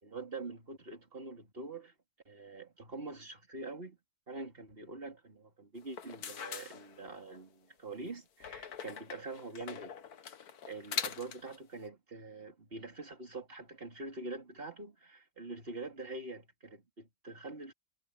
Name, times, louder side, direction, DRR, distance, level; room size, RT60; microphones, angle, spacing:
voice 1, 0.0-1.9 2.3-4.0 4.3-10.0 10.6-17.7, right 3 dB, 35° right, 3.5 m, -45 dB
sound 1, 5.8-7.4 8.4-11.6, left 7 dB, 70° left, 1.7 m, -42 dB
omnidirectional pair, 1.7 m